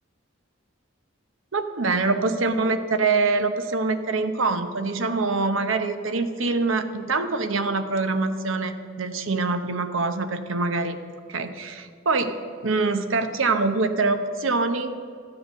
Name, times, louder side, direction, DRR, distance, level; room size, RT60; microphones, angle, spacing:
voice 1, 1.5-8.7 9.0-11.0 11.3-12.4 12.6-14.9, right 3 dB, 75° right, 8 dB, 0.9 m, -24 dB
13.5 x 7.8 x 6.4 m, 2.3 s
head